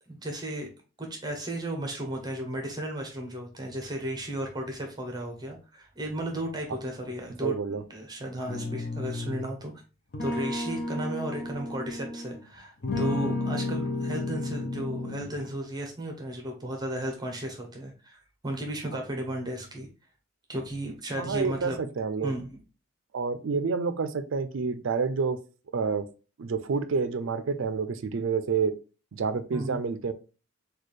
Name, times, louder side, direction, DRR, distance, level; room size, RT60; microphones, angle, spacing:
voice 1, 0.1-0.7 1.0-7.5 7.9-9.7 10.2-19.9 20.5-21.8 22.2-22.6 29.5-29.8, right 1 dB, 20° right, 3 dB, 0.7 m, -34 dB
voice 2, 7.4-7.8 21.2-22.3 23.1-25.4 25.7-26.1 26.4-28.7 29.1-30.1, right 5 dB, 65° right, 12 dB, 0.4 m, -28 dB
sound 1, 8.5-9.6 10.1-12.4 12.8-15.4, left 2 dB, 50° left, 0.6 m, -32 dB
4.1 x 2.3 x 3.1 m, 0.34 s
head